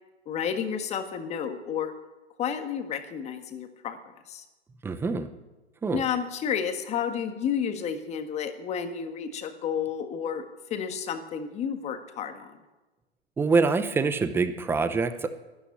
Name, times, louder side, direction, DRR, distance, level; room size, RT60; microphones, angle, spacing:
voice 1, 0.2-1.9 2.4-4.0 4.3-4.4 5.9-10.4 10.7-12.6, left 7 dB, 20° left, 7 dB, 1.6 m, -31 dB
voice 2, 4.8-5.3 5.8-6.0 13.4-15.3, right 4 dB, 5° right, 11 dB, 0.8 m, -25 dB
13.0 x 11.0 x 9.7 m, 1.1 s
hypercardioid pair, 125°, 33 cm